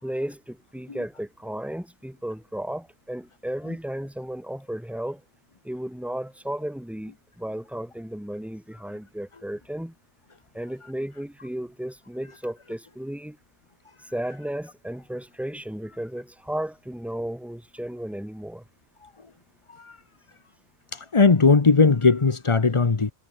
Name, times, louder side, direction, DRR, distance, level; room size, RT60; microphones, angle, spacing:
voice 1, 0.0-5.2 5.6-9.9 10.5-13.4 14.1-18.6, right 1 dB, ahead, 4.7 m, -34 dB
voice 2, 20.9-23.1, left 4 dB, 25° left, 0.9 m, -18 dB
omnidirectional pair, 1.4 m